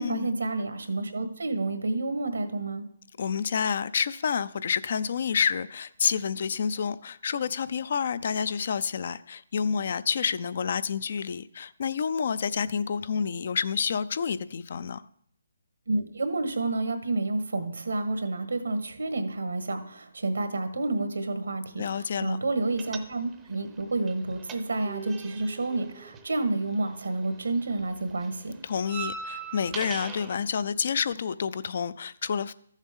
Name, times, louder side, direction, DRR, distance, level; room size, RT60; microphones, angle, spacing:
voice 1, 0.0-2.9 15.9-28.5, right 2 dB, 80° right, 1.4 m, -29 dB
voice 2, 3.2-15.0 21.8-22.4 28.6-32.5, left 6 dB, 55° left, 0.4 m, -29 dB
sound 1, 22.8-23.6 23.8-27.2 27.5-30.3, right 6 dB, 15° right, 0.6 m, -40 dB
13.5 x 7.2 x 3.6 m
figure-of-eight pair, 150°, 0 cm